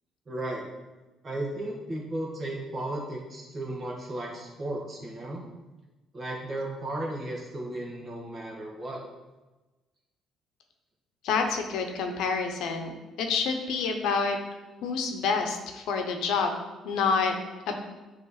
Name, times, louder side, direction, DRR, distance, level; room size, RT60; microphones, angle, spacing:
voice 1, 0.3-0.7 1.2-5.4 6.1-9.0, right 1 dB, 30° right, -1 dB, 1.5 m, -35 dB
voice 2, 11.2-14.4 14.8-16.6 16.8-17.3 17.7-17.8, left 5 dB, 80° left, 4 dB, 0.8 m, -28 dB
8.4 x 3.2 x 4.1 m, 1.2 s
cardioid pair, 115°, 0 cm